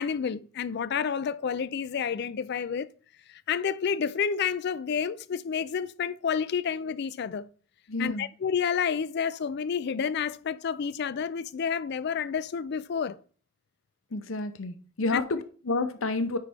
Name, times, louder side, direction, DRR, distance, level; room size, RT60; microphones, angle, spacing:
voice 1, 0.0-2.9 3.3-7.5 8.0-13.2 15.1-15.2, left 7 dB, 55° left, 0.4 m, -30 dB
voice 2, 7.9-8.3 14.1-16.4, left 3 dB, 85° left, 0.7 m, -30 dB
10.0 x 4.1 x 3.4 m
head